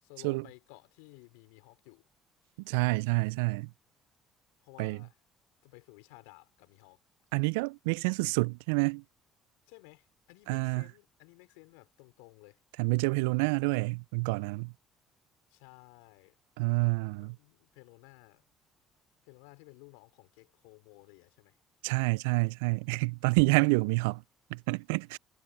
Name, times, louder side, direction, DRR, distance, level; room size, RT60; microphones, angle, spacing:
voice 1, 0.0-2.0 4.6-5.1 5.6-7.0 9.7-12.6 15.5-16.4 16.8-18.4 19.3-21.6, left 31 dB, 80° left, 4.5 m, -55 dB
voice 2, 2.7-3.7 4.8-5.0 7.3-9.0 10.5-10.8 12.8-14.7 16.6-17.3 21.8-24.2 24.5-25.2, right 28 dB, 80° right, 0.3 m, -28 dB
hypercardioid pair, 55°, 0 cm